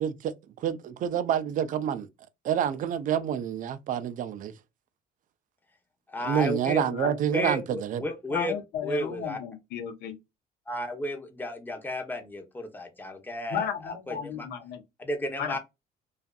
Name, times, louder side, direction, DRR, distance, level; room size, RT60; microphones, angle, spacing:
voice 1, 0.0-0.3 0.6-2.1 2.4-4.5 6.3-8.0, right 9 dB, 50° right, 0.4 m, -28 dB
voice 2, 6.1-6.8 7.3-8.6 8.8-9.4 10.7-14.5 15.0-15.6, left 1 dB, 10° left, 0.7 m, -33 dB
voice 3, 8.1-10.2 13.5-14.8 15.4-15.6, left 8 dB, 80° left, 0.7 m, -34 dB
2.5 x 2.4 x 2.2 m
cardioid pair, 110°, 17 cm